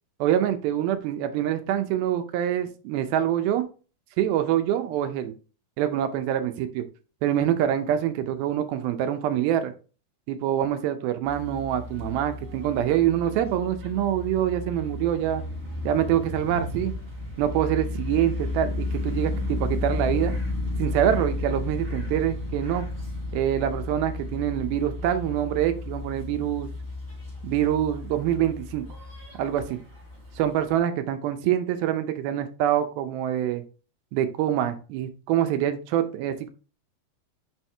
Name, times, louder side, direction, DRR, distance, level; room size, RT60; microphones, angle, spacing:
voice 1, 0.2-3.6 4.2-5.3 5.8-6.9 7.2-9.7 10.3-15.4 15.8-16.9 17.4-20.3 20.8-22.9 23.3-26.7 27.4-28.9 29.4-29.8 30.4-33.6 34.1-36.5, right 11 dB, 80° right, 8 dB, 2.5 m, -25 dB
sound 1, 11.2-30.8, left 2 dB, 25° right, 2.6 m, -33 dB
6.3 x 4.6 x 3.3 m, 0.35 s
omnidirectional pair, 4.4 m